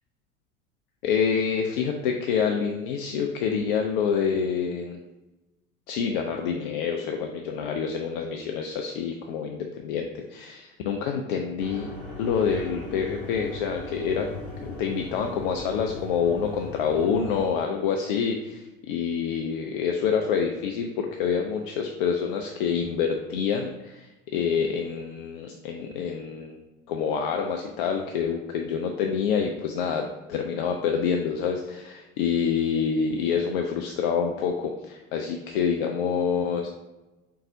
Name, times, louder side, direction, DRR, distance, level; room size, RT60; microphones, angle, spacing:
voice 1, 1.0-5.0 5.9-11.9 12.2-14.3 14.6-26.6 26.9-36.7, left 6 dB, 45° left, 3 dB, 0.4 m, -27 dB
sound 1, 11.6-17.5, left 2 dB, 5° left, 1.3 m, -38 dB
4.5 x 3.8 x 2.6 m, 1.1 s
figure-of-eight pair, 75°, 40 cm